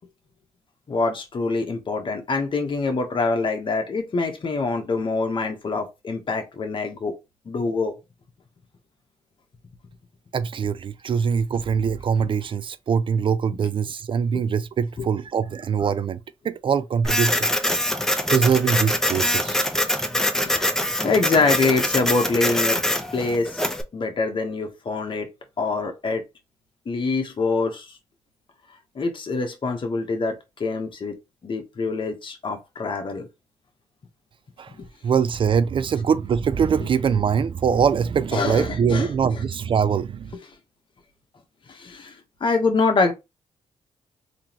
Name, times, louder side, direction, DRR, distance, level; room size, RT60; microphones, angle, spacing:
voice 1, 0.9-7.1 7.5-7.9 13.5-13.6 14.3-14.4 15.0-15.1 20.4-22.8 23.1-23.7 23.9-25.3 25.6-26.2 26.8-28.0 28.9-31.2 31.4-33.3 34.8-34.9 38.3-39.4 41.7-43.1, left 3 dB, 45° left, 1.2 m, -25 dB
voice 2, 10.3-16.2 16.4-17.4 18.3-19.6 34.6-34.7 35.0-40.4, right 7 dB, 45° right, 0.4 m, -23 dB
Printer, 17.0-23.8, left 1 dB, 5° left, 0.8 m, -24 dB
3.7 x 3.0 x 3.0 m
cardioid pair, 75°, 12 cm